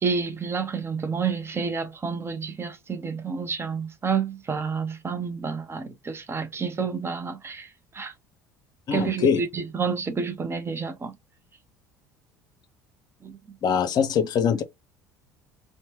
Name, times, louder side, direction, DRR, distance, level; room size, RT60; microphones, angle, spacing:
voice 1, 0.0-7.7 7.9-8.1 8.9-11.1 13.2-13.4, right 5 dB, 25° right, 0.6 m, -29 dB
voice 2, 8.9-9.4 13.6-14.6, left 7 dB, 45° left, 0.6 m, -22 dB
2.9 x 2.1 x 2.9 m
hypercardioid pair, 65°, 10 cm